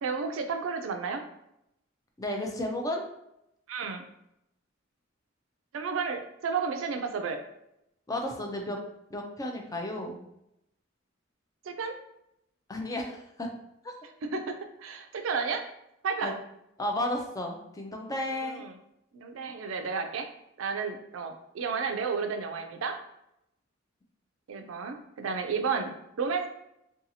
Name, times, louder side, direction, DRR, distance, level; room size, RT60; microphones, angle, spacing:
voice 1, 0.0-1.2 3.7-4.0 5.7-7.4 11.6-12.0 14.3-15.7 16.0-16.4 18.3-18.7 19.1-20.3 20.6-23.0 24.5-26.5, right 5 dB, 85° right, 6 dB, 0.4 m, -32 dB
voice 2, 2.2-3.0 8.1-8.8 9.1-10.2 12.7-13.5 13.8-13.9 16.2-16.3 16.8-18.6, left 1 dB, 20° left, 2 dB, 0.4 m, -33 dB
2.7 x 2.3 x 2.7 m, 0.81 s
head